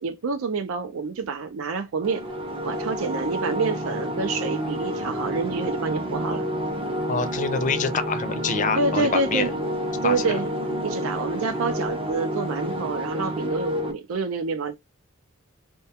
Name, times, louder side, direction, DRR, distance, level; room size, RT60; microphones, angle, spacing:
voice 1, 0.0-2.2 2.6-6.5 8.8-9.5 10.0-10.5 10.8-14.7, right 4 dB, 80° right, 0.4 m, -27 dB
sound 1, 2.0-13.9, equal, 25° right, 0.5 m, -29 dB
voice 2, 7.1-9.5 10.0-10.4, left 5 dB, 40° left, 0.4 m, -26 dB
2.3 x 2.2 x 2.7 m
head